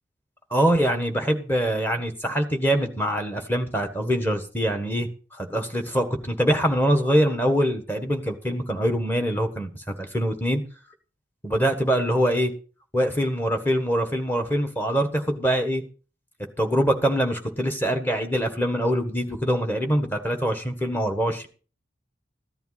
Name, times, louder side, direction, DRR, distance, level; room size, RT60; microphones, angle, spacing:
voice 1, 0.5-10.6 11.4-12.5 12.9-15.8 16.6-21.5, equal, 10° left, 5 dB, 1.5 m, -24 dB
14.5 x 10.5 x 4.1 m, 0.38 s
head